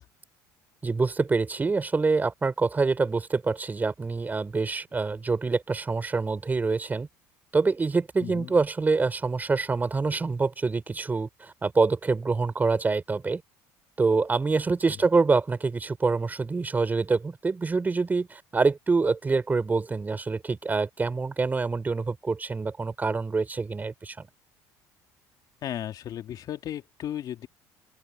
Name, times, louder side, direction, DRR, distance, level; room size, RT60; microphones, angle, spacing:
voice 1, 0.8-7.1 7.5-13.4 14.0-24.3, right 4 dB, 20° right, 4.2 m, -26 dB
voice 2, 8.2-8.5 25.6-27.5, left 11 dB, 55° left, 2.8 m, -35 dB
open air
supercardioid pair, 95°, 8 cm